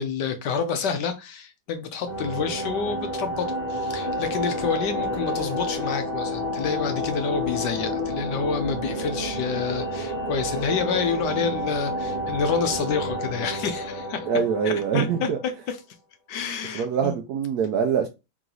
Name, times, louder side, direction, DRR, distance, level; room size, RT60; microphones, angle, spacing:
voice 1, 0.0-14.3 14.6-15.8 16.3-17.2, left 6 dB, 70° left, 1.1 m, -28 dB
sound 1, 2.1-15.6, equal, 35° left, 1.0 m, -30 dB
voice 2, 14.3-15.4 16.7-18.1, right 7 dB, 75° right, 0.9 m, -24 dB
3.7 x 3.0 x 3.8 m
omnidirectional pair, 2.2 m